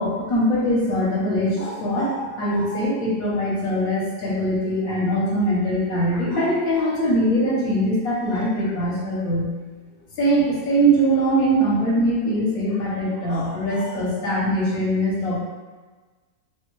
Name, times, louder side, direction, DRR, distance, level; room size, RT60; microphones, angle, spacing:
voice 1, 0.0-9.5 10.2-15.4, right 1 dB, 65° left, -6 dB, 1.1 m, -22 dB
2.9 x 2.1 x 3.0 m, 1.3 s
omnidirectional pair, 1.6 m